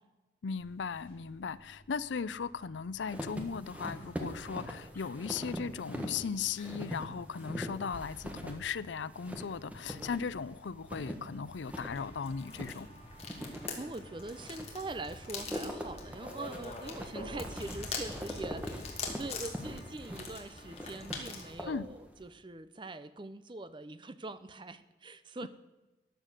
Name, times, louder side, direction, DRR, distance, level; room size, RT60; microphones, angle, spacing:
voice 1, 0.4-12.9 21.7-21.9 25.4-25.5, left 6 dB, 85° left, 18 dB, 0.5 m, -37 dB
sound 1, 0.6-19.1, equal, 15° left, 4.6 m, -57 dB
sound 2, 3.1-22.2, equal, 10° right, 1.5 m, -43 dB
sound 3, 11.6-21.5, left 4 dB, 35° left, 2.4 m, -44 dB
voice 2, 13.4-25.5, right 2 dB, 25° right, 13 dB, 0.6 m, -43 dB
14.0 x 10.5 x 6.5 m, 1.1 s
head